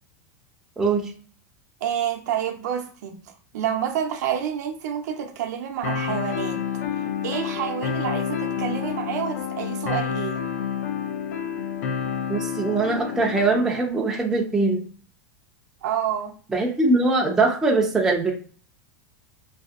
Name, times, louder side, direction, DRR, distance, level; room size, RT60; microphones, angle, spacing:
voice 1, 0.8-1.1 12.3-14.8 16.5-18.3, right 3 dB, 5° right, 0.4 m, -22 dB
voice 2, 1.8-6.7 7.2-10.5 15.8-16.3, right 9 dB, 75° right, 0.5 m, -28 dB
sound 1, 5.8-13.8, left 7 dB, 70° left, 0.4 m, -29 dB
2.6 x 2.1 x 2.3 m
supercardioid pair, 165°, 9 cm